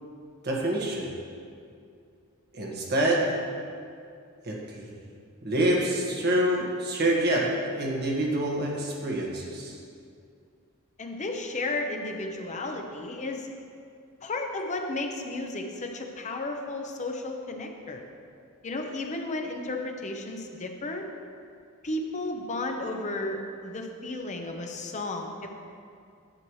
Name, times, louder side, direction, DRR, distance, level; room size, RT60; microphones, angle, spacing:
voice 1, 0.4-1.1 2.5-3.3 4.4-5.0 5.4-9.8, right 1 dB, 50° right, -2 dB, 1.5 m, -26 dB
voice 2, 11.0-13.5 14.2-18.0 18.6-21.1 21.8-25.5, left 2 dB, 35° left, 3 dB, 0.7 m, -33 dB
10.5 x 7.7 x 3.2 m, 2.4 s
head